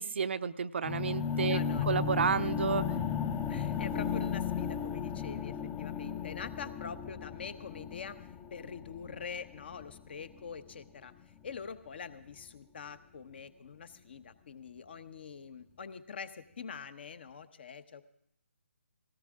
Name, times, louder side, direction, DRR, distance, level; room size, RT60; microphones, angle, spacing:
voice 1, 0.0-1.6 1.9-2.9, right 6 dB, 50° right, 12 dB, 0.6 m, -31 dB
sound 1, 0.8-10.8, left 7 dB, 15° left, 0.7 m, -35 dB
voice 2, 1.4-2.0 2.4-2.5 3.5-8.2 8.5-11.1 11.4-18.0, left 6 dB, 45° left, 12 dB, 1.1 m, -44 dB
20.0 x 17.5 x 3.7 m, 0.72 s
figure-of-eight pair, 150°, 8 cm